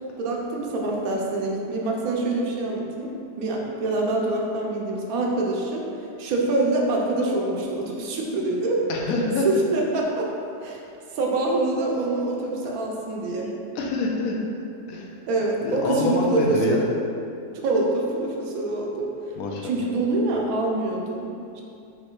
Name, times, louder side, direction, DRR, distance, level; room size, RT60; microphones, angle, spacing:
voice 1, 0.2-3.1 3.4-5.8 6.2-8.8 9.5-10.3 10.6-10.8 11.1-13.5 15.3-16.8 17.5-19.1 19.6-21.6, right 2 dB, 70° right, -1 dB, 1.0 m, -25 dB
voice 2, 8.9-9.5 13.7-14.4 14.9-15.1 15.6-16.9 19.4-19.9, left 2 dB, 70° left, 0 dB, 0.9 m, -26 dB
5.5 x 3.1 x 3.0 m, 2.6 s
omnidirectional pair, 1.8 m